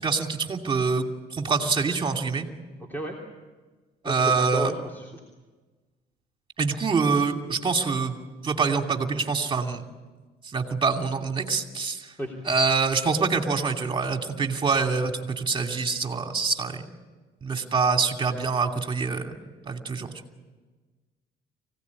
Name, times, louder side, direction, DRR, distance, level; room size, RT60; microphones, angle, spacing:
voice 1, 0.0-2.5 4.0-4.7 6.6-8.2 8.4-9.8 10.4-12.1 12.4-16.9 17.4-19.3 19.7-20.1, right 4 dB, 30° right, 4 dB, 2.8 m, -25 dB
voice 2, 4.0-5.1 12.2-12.3 19.3-19.4, right 1 dB, 10° left, 0 dB, 3.2 m, -32 dB
25.0 x 17.5 x 9.7 m, 1.3 s
cardioid pair, 110°, 17 cm